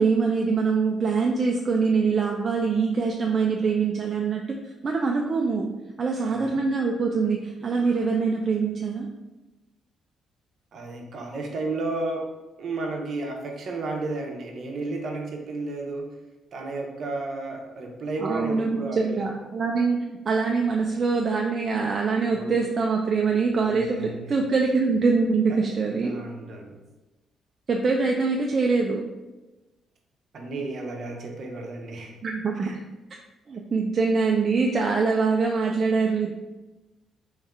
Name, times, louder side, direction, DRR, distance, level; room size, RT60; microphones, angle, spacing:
voice 1, 0.0-4.4 4.8-5.7 6.0-9.1 18.2-26.2 27.7-29.0 32.2-32.7 33.5-36.3, right 4 dB, 45° right, 0 dB, 0.4 m, -24 dB
voice 2, 6.2-6.6 10.7-12.3 12.6-16.1 16.5-19.3 22.3-22.6 23.6-24.3 25.5-25.6 25.8-26.8 30.3-32.2 32.6-32.8, right 2 dB, 60° right, 2 dB, 0.8 m, -33 dB
3.5 x 3.1 x 3.4 m, 1.1 s
cardioid pair, 90°, 0 cm